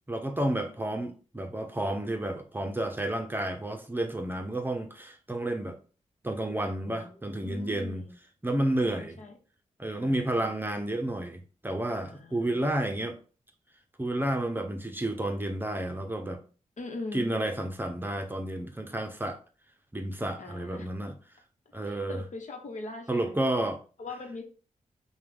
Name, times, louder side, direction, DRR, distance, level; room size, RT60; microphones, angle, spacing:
voice 1, 0.1-5.8 6.2-8.1 8.4-9.2 9.8-13.2 14.0-16.4 17.1-19.4 19.9-21.1 21.7-22.2 23.1-23.8, right 1 dB, 15° right, 0.7 m, -31 dB
voice 2, 6.8-8.1 8.8-9.4 9.9-10.9 12.1-13.0 16.8-17.3 20.4-20.9 21.8-23.4 24.0-24.4, left 3 dB, 65° left, 1.1 m, -42 dB
5.5 x 2.3 x 3.5 m
cardioid pair, 75°, 13 cm